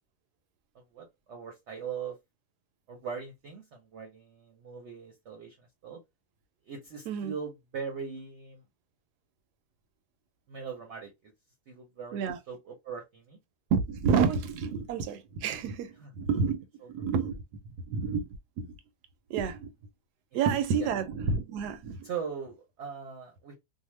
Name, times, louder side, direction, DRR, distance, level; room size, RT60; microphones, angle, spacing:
voice 1, 0.7-2.2 2.9-6.0 6.7-8.6 10.5-11.3 11.7-13.4 16.0-16.1 16.8-16.9 20.8-20.9 22.0-23.5, right 6 dB, 60° right, 0.8 m, -40 dB
voice 2, 13.7-17.4 17.9-18.3 18.6-18.7 19.3-19.7 20.3-22.1, right 6 dB, 85° right, 1.1 m, -29 dB
2.7 x 2.1 x 3.1 m
omnidirectional pair, 1.7 m